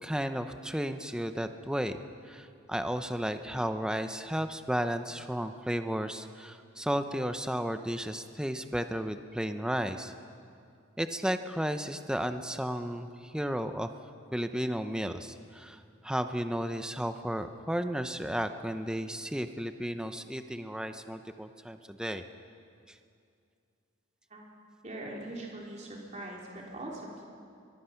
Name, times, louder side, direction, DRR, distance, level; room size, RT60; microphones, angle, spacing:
voice 1, 0.0-10.1 11.0-13.9 14.3-22.2, equal, 5° right, 8 dB, 0.7 m, -33 dB
voice 2, 24.8-27.2, right 1 dB, 35° right, -2 dB, 3.5 m, -41 dB
23.0 x 23.0 x 5.8 m, 2.4 s
head